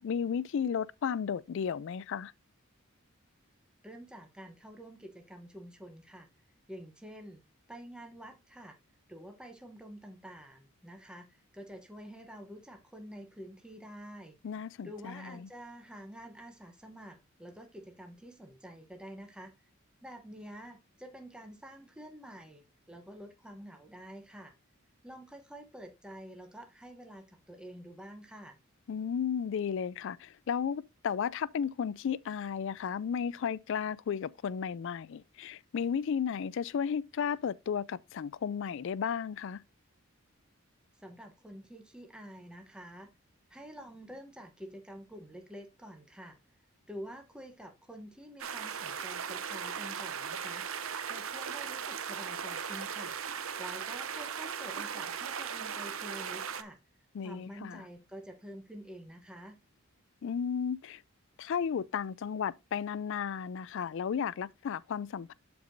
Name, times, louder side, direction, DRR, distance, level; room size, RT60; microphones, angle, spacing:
voice 1, 0.0-2.3 14.4-15.4 28.9-39.6 57.1-57.8 60.2-61.0 61.4-65.3, left 7 dB, 60° left, 0.3 m, -34 dB
voice 2, 3.8-6.3 6.7-7.4 7.7-8.8 9.1-14.4 14.8-19.7 20.0-24.5 25.0-28.6 41.0-43.1 43.5-46.4 46.9-56.8 57.2-59.6, equal, 5° right, 0.9 m, -48 dB
sound 1, 48.4-56.6, right 7 dB, 65° right, 0.7 m, -38 dB
12.5 x 4.6 x 2.6 m
head